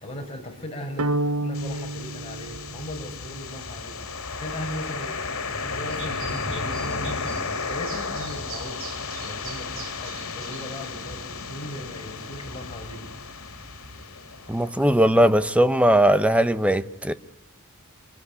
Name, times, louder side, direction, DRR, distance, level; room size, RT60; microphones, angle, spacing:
voice 1, 0.0-4.0 4.3-7.3 7.5-8.8 9.2-13.3, left 1 dB, 30° left, 5.6 m, -38 dB
sound 1, 1.0-3.3, right 2 dB, 85° right, 1.3 m, -29 dB
sound 2, 1.5-15.4, left 4 dB, 65° left, 3.8 m, -34 dB
sound 3, 5.9-10.9, right 5 dB, 65° right, 3.7 m, -43 dB
voice 2, 14.5-17.1, right 1 dB, 5° right, 0.9 m, -19 dB
24.5 x 19.0 x 9.8 m
head